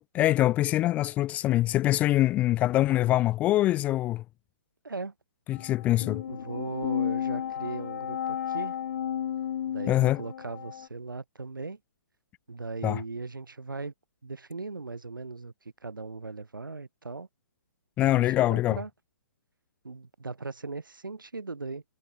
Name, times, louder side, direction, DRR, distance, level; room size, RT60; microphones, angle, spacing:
voice 1, 0.1-4.2 5.5-6.2 9.9-10.2 12.8-13.0 18.0-18.8, left 15 dB, 15° left, 0.3 m, -24 dB
sound 1, 5.5-10.9, left 9 dB, 50° left, 2.2 m, -33 dB
voice 2, 6.3-8.8 9.7-11.8 12.5-13.9 14.2-17.3 18.0-18.9 19.8-21.8, right 3 dB, 80° right, 3.5 m, -38 dB
figure-of-eight pair, 135°, 11 cm